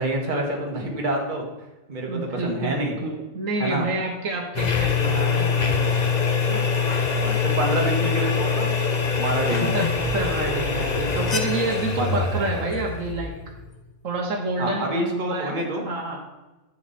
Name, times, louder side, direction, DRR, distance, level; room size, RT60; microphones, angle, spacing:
voice 1, 0.0-1.4 1.9-3.0 3.6-3.9 6.5-6.6 7.2-8.7 9.1-9.9 11.9-12.4 14.6-15.8, right 1 dB, 35° right, 0 dB, 1.6 m, -27 dB
voice 2, 2.1-5.8 9.7-13.3 14.0-16.2, right 2 dB, 70° right, 2 dB, 1.5 m, -28 dB
sound 1, 4.5-13.7, left 5 dB, 35° left, 0.9 m, -24 dB
9.1 x 7.6 x 4.2 m, 1.1 s
omnidirectional pair, 1.4 m